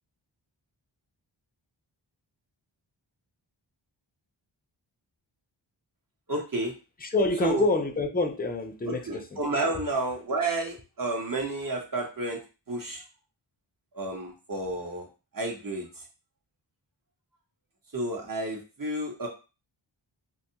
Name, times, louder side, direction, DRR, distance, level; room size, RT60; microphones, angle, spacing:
voice 1, 6.3-6.7 7.4-7.7 8.9-12.4 12.7-13.0 13.9-15.1 15.3-16.0 17.9-19.3, right 2 dB, 45° right, -1 dB, 0.9 m, -31 dB
voice 2, 7.0-9.4, left 2 dB, 20° left, 5 dB, 0.4 m, -27 dB
2.6 x 2.2 x 2.8 m, 0.31 s
wide cardioid pair, 60°, 48 cm